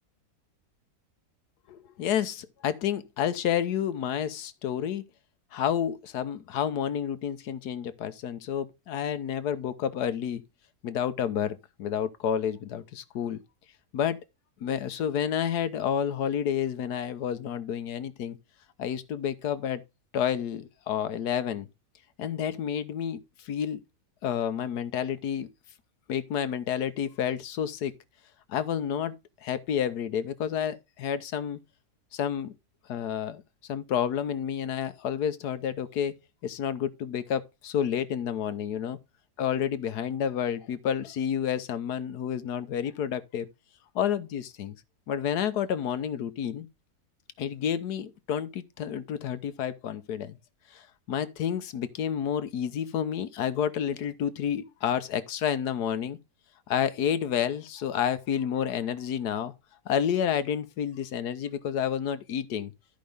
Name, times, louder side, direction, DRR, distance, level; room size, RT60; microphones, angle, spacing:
voice 1, 1.7-5.0 5.5-10.4 10.8-13.4 13.9-14.2 14.6-18.4 18.8-19.8 20.1-21.7 22.2-23.8 24.2-25.5 26.1-27.9 28.5-29.1 29.4-31.6 32.1-32.5 32.9-33.4 33.7-39.0 39.4-43.5 43.9-44.8 45.1-46.7 47.4-50.4 50.7-56.2 56.7-59.5 59.9-62.7, left 9 dB, 90° left, 1.4 m, -30 dB
13.5 x 5.2 x 3.4 m
omnidirectional pair, 1.7 m